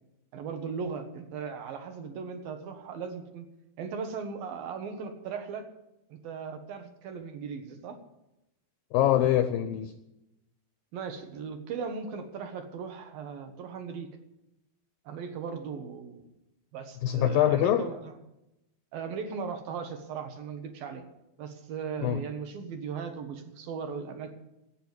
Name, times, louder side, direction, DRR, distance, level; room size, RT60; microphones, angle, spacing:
voice 1, 0.3-3.5 3.8-5.7 6.1-8.0 10.9-14.1 15.1-16.2 16.7-18.1 18.9-21.0 21.4-24.3, right 6 dB, 65° right, 6 dB, 2.8 m, -38 dB
voice 2, 8.9-9.9 17.0-17.8 22.0-22.2, left 12 dB, 85° left, 10 dB, 2.0 m, -24 dB
12.0 x 9.2 x 9.7 m, 0.91 s
omnidirectional pair, 5.0 m